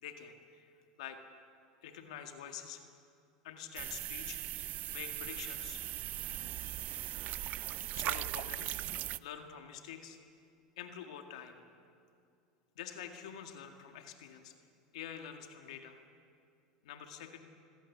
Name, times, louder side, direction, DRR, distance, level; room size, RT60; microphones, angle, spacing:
voice 1, 0.0-0.7 1.0-1.2 1.8-2.8 3.4-4.4 4.9-5.8 7.9-8.8 9.2-10.2 10.8-11.6 12.8-14.5 14.9-16.0 16.8-17.4, left 9 dB, 75° left, 5 dB, 1.9 m, -46 dB
sound 1, 3.8-9.2, right 15 dB, 50° right, 0.5 m, -39 dB
26.5 x 16.5 x 7.3 m, 2.4 s
hypercardioid pair, 95°, 4 cm